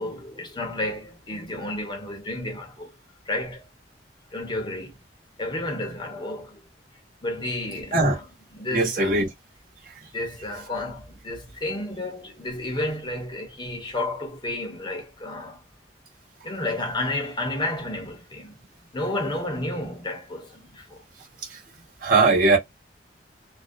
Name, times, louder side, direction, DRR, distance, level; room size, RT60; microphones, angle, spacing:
voice 1, 0.0-2.9 3.3-3.6 4.3-5.0 5.4-6.6 7.2-8.3 8.5-9.3 10.1-15.6 16.4-18.5 18.9-21.0, left 2 dB, 25° left, 0.8 m, -31 dB
voice 2, 8.7-9.3 22.0-22.6, right 3 dB, 50° right, 1.0 m, -19 dB
2.4 x 2.0 x 2.5 m
head